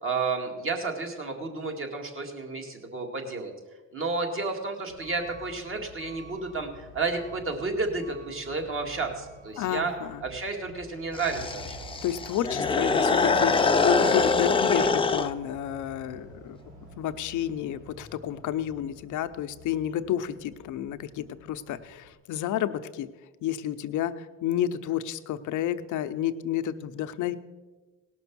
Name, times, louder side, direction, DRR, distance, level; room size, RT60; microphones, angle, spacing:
voice 1, 0.0-3.5 3.9-9.9 10.2-12.0, right 3 dB, 45° right, 3 dB, 2.1 m, -31 dB
Truck / Alarm, 4.9-22.1, equal, 85° right, 3.8 m, -48 dB
voice 2, 9.6-10.2 12.0-16.6 17.0-23.1 23.4-27.4, left 11 dB, 80° left, 10 dB, 0.7 m, -31 dB
sound 1, 11.1-15.3, left 4 dB, 15° left, 0.6 m, -24 dB
18.0 x 6.1 x 6.0 m, 1.2 s
cardioid pair, 90°, 30 cm